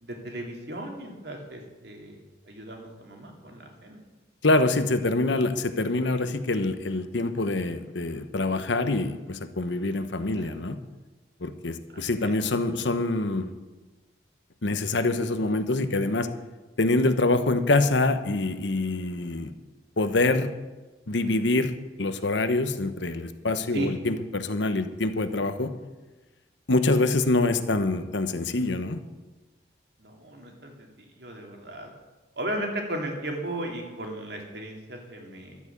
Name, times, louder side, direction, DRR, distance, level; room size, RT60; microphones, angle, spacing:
voice 1, 0.0-2.2 2.5-4.0 10.3-10.6 11.9-12.3 23.7-23.9 30.0-30.9 31.1-31.9 32.4-35.6, right 1 dB, 65° right, 1 dB, 2.8 m, -36 dB
voice 2, 4.4-10.8 11.4-13.5 14.6-16.3 16.8-19.5 20.0-20.5 21.1-21.7 22.0-25.7 26.7-29.0, left 2 dB, 80° left, 9 dB, 1.1 m, -25 dB
12.5 x 8.6 x 8.5 m, 1.2 s
head